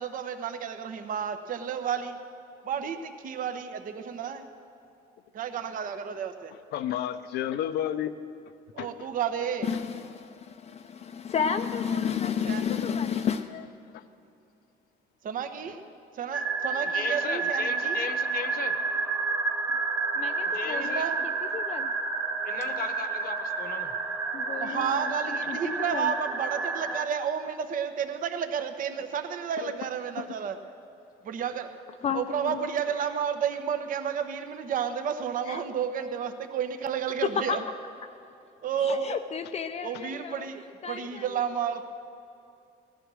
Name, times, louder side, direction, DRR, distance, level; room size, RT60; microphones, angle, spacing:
voice 1, 0.0-2.2 2.6-4.5 5.3-6.5 8.7-9.7 12.5-12.6 15.2-15.8 16.2-18.0 20.8-21.3 24.6-30.6 31.2-31.7 32.1-37.6 38.6-39.2 39.8-41.8, right 8 dB, 55° right, 8 dB, 1.0 m, -31 dB
voice 2, 6.7-8.1 8.8-8.9 13.5-13.6 13.9-14.0 25.4-25.5 29.6-29.8 30.2-30.3, left 11 dB, 75° left, 11 dB, 0.7 m, -31 dB
voice 3, 9.6-13.5 20.1-21.9 24.3-26.1 32.0-32.7 35.5-35.7 37.2-37.6 38.8-40.5 40.8-41.4, left 7 dB, 40° left, 6 dB, 0.5 m, -32 dB
sound 1, 16.3-27.1, right 4 dB, 15° right, 1.3 m, -30 dB
voice 4, 16.9-18.7 20.5-21.0 22.5-23.9, left 7 dB, 60° left, 9 dB, 1.0 m, -36 dB
16.0 x 11.5 x 6.3 m, 2.7 s
cardioid pair, 110°, 17 cm